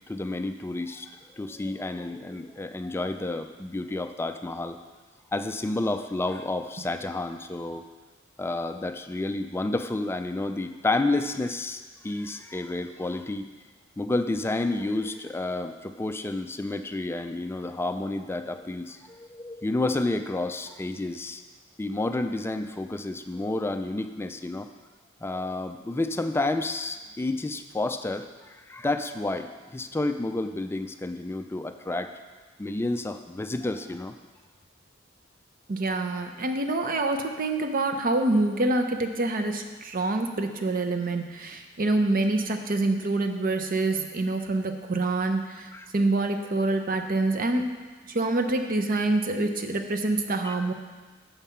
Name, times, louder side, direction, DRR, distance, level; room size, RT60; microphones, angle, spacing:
voice 1, 0.1-4.8 5.3-7.8 8.4-13.5 14.0-21.4 21.8-24.7 25.2-32.1 32.6-34.1 45.7-45.8 50.4-50.7, left 2 dB, 10° left, 8 dB, 0.3 m, -30 dB
voice 2, 35.7-47.7 48.1-50.7, right 2 dB, 45° right, 6 dB, 0.7 m, -26 dB
7.2 x 5.5 x 5.6 m, 1.3 s
head